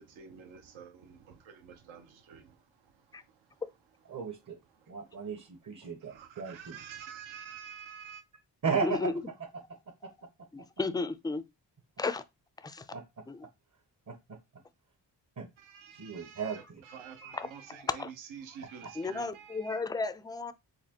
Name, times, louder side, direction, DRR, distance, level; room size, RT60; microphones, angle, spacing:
voice 1, 0.0-3.6 4.7-5.3 6.0-8.2 15.6-19.8, right 7 dB, 75° right, 0.8 m, -49 dB
voice 2, 4.1-4.6 4.9-6.7 8.6-9.1 10.0-10.1 12.9-13.0 14.1-14.4 15.4-15.5 16.0-16.8 18.8-18.9, right 5 dB, 40° right, 0.9 m, -35 dB
voice 3, 8.8-9.1 10.5-11.4 12.0-12.2 12.6-12.9 13.3-13.5 17.3-17.5 18.0-18.1 19.0-20.5, left 3 dB, 10° left, 0.4 m, -33 dB
4.2 x 2.3 x 2.8 m
supercardioid pair, 40°, 47 cm